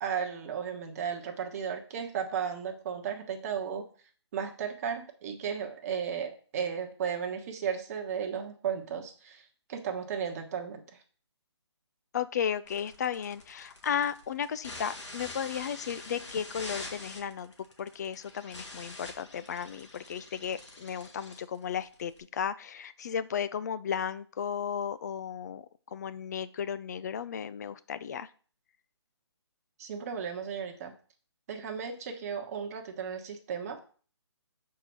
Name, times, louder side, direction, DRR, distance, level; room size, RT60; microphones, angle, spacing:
voice 1, 0.0-3.9 4.3-11.0 29.8-30.9 31.5-33.8, right 7 dB, 30° right, 4 dB, 1.2 m, -35 dB
voice 2, 12.1-17.5 17.8-28.3, left 8 dB, 35° left, 14 dB, 0.4 m, -34 dB
sound 1, 12.6-22.2, left 2 dB, 85° left, 2.5 m, -45 dB
6.6 x 4.6 x 5.5 m, 0.42 s
figure-of-eight pair, 150°, 15 cm